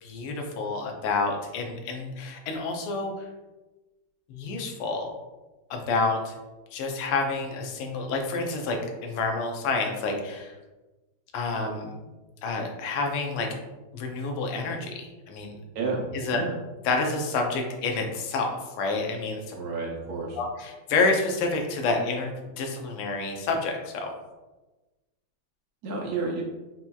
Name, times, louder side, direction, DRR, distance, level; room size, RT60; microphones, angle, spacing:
voice 1, 0.0-3.3 4.3-5.1 5.7-6.3 6.7-10.5 11.3-11.9 12.4-13.5 13.9-15.6 16.1-16.4 16.8-19.5 20.3-22.3 22.6-24.1, left 3 dB, 85° left, 2 dB, 1.5 m, -28 dB
voice 2, 19.5-20.4 25.8-26.4, right 4 dB, 90° right, -2 dB, 0.8 m, -30 dB
5.8 x 2.8 x 2.3 m, 1.1 s
omnidirectional pair, 2.3 m